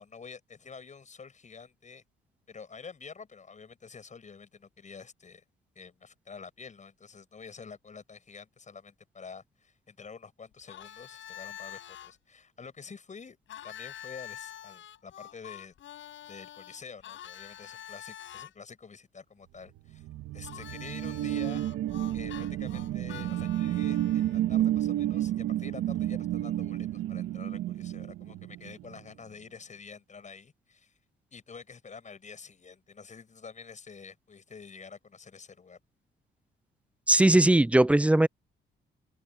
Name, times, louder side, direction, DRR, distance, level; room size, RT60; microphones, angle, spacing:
voice 1, 0.0-2.0 2.5-5.4 5.7-13.4 13.6-15.7 16.3-20.1 20.3-21.6 22.1-30.9 31.3-35.8, left 5 dB, 35° left, 8.0 m, -48 dB
Harmonica, 10.7-12.1 13.5-18.5 20.4-24.4, left 11 dB, 75° left, 6.9 m, -46 dB
sound 1, 19.8-29.0, right 13 dB, 90° right, 1.7 m, -31 dB
voice 2, 37.1-38.3, right 1 dB, 5° right, 0.3 m, -20 dB
open air
cardioid pair, 90°, 20 cm